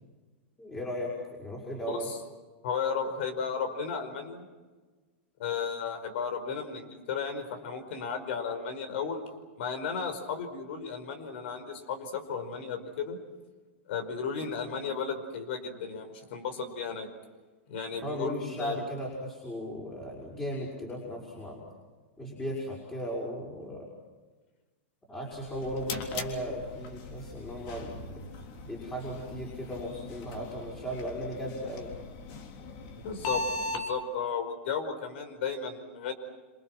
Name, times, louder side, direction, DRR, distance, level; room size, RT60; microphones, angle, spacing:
voice 1, 0.6-2.1 18.0-21.6 22.2-23.9 25.1-28.1 28.6-31.9, equal, 15° left, -3 dB, 6.1 m, -36 dB
voice 2, 1.9-2.2 2.6-4.5 5.4-9.2 9.6-13.2 13.9-17.1 17.7-18.8 33.0-36.1, left 6 dB, 65° left, 9 dB, 5.1 m, -34 dB
sound 1, 25.3-33.8, left 3 dB, 50° left, 3.5 m, -39 dB
28.0 x 27.0 x 6.2 m, 1.3 s
hypercardioid pair, 130°, 7 cm